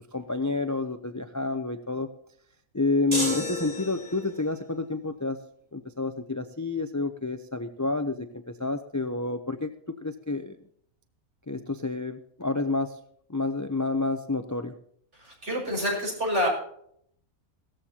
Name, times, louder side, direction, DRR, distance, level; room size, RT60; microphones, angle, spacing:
voice 1, 0.1-2.1 2.7-5.4 5.7-8.3 8.6-10.6 11.5-13.0 13.3-14.7, left 3 dB, 25° left, 9 dB, 0.3 m, -29 dB
sound 1, 3.1-4.4, equal, 20° right, 5.9 m, -31 dB
voice 2, 15.1-16.5, equal, 55° right, -2 dB, 6.6 m, -28 dB
17.5 x 14.0 x 2.9 m, 0.67 s
omnidirectional pair, 1.5 m